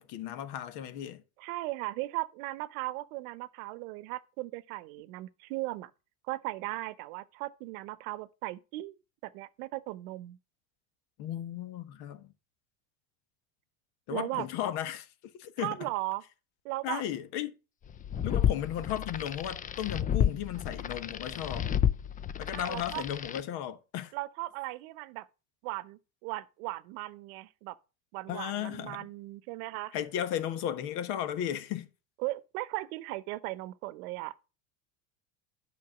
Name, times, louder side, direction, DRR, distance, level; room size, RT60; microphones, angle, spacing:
voice 1, 0.0-1.2 11.2-12.3 14.1-15.1 15.4-15.9 16.8-17.6 18.2-21.8 22.4-24.1 28.3-29.1 29.9-31.9, left 10 dB, 60° left, 1.3 m, -35 dB
voice 2, 1.4-5.9 6.3-8.9 9.2-10.4 14.1-14.5 15.6-16.2 16.6-17.0 21.0-21.2 22.5-23.0 24.1-25.3 25.6-27.8 28.1-29.9 32.2-34.4, right 19 dB, 70° right, 0.9 m, -37 dB
sound 1, 17.9-23.4, left 9 dB, 20° left, 0.4 m, -31 dB
8.6 x 5.8 x 5.9 m
supercardioid pair, 100°, 44 cm